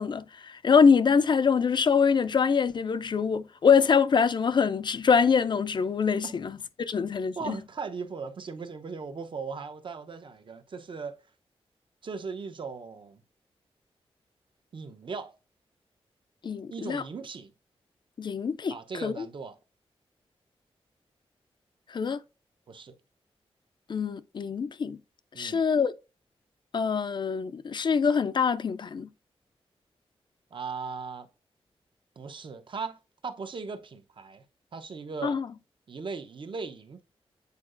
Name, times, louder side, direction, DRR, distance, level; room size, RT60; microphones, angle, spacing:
voice 1, 0.0-7.6 16.4-17.0 18.2-18.7 19.0-19.3 21.9-22.2 23.9-25.0 25.4-25.9 26.7-29.1 35.2-35.5, left 6 dB, 50° left, 0.4 m, -24 dB
voice 2, 7.4-11.2 12.0-13.2 14.7-15.3 16.7-17.5 18.7-19.6 22.7-23.0 25.3-25.6 30.5-31.3 32.2-34.4 34.7-35.4 35.9-37.0, right 5 dB, 50° right, 0.8 m, -38 dB
8.2 x 4.6 x 2.5 m
wide cardioid pair, 120°, 10 cm